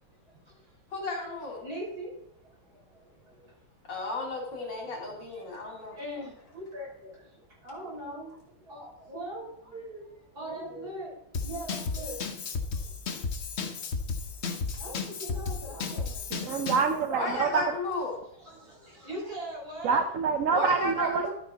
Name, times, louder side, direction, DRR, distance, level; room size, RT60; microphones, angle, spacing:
voice 1, 0.9-1.6 3.9-6.0 17.2-18.1 20.5-21.3, left 3 dB, 65° left, -1 dB, 3.9 m, -34 dB
voice 2, 1.6-2.1 2.9-3.5 5.6-12.2 12.7-12.9 13.7-13.9 14.8-16.6 17.1-17.5 18.4-20.1, right 1 dB, 50° right, -5 dB, 6.2 m, -41 dB
Drum kit / Drum, 11.3-16.9, left 4 dB, 45° left, 1.0 m, -34 dB
voice 3, 16.3-17.7 19.8-21.3, right 5 dB, 65° right, 7 dB, 0.8 m, -26 dB
12.5 x 9.3 x 4.0 m, 0.75 s
omnidirectional pair, 2.1 m